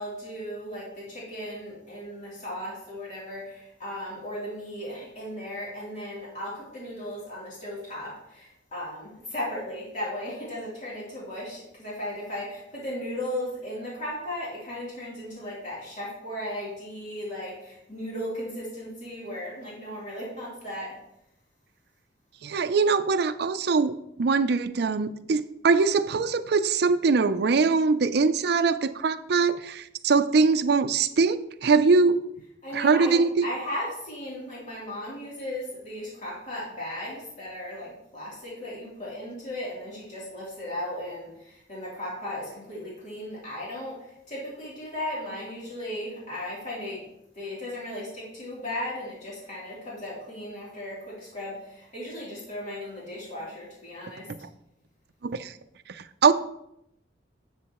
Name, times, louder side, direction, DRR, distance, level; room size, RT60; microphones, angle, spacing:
voice 1, 0.0-20.9 32.6-47.0 47.3-54.3, left 1 dB, 45° left, -6 dB, 3.2 m, -36 dB
voice 2, 22.4-32.2 32.7-33.4 55.2-55.5 56.2-56.3, right 4 dB, 60° right, 10 dB, 0.5 m, -22 dB
10.5 x 7.2 x 3.0 m, 0.80 s
head